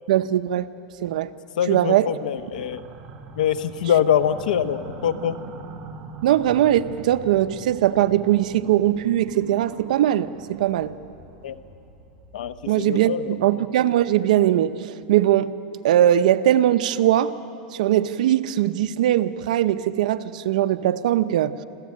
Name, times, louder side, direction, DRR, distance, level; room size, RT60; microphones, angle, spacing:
voice 1, 0.1-0.7 1.0-1.3 1.7-2.1 6.2-10.9 12.7-14.8 15.1-15.5 15.8-17.3 17.8-21.6, right 12 dB, 70° right, 10 dB, 0.8 m, -20 dB
voice 2, 1.6-2.8 3.4-5.4 11.4-11.6 12.3-13.4, left 9 dB, 80° left, 12 dB, 1.0 m, -24 dB
sound 1, 2.4-12.9, right 3 dB, 25° right, 1.8 m, -42 dB
27.0 x 14.5 x 8.7 m, 2.8 s
supercardioid pair, 165°, 4 cm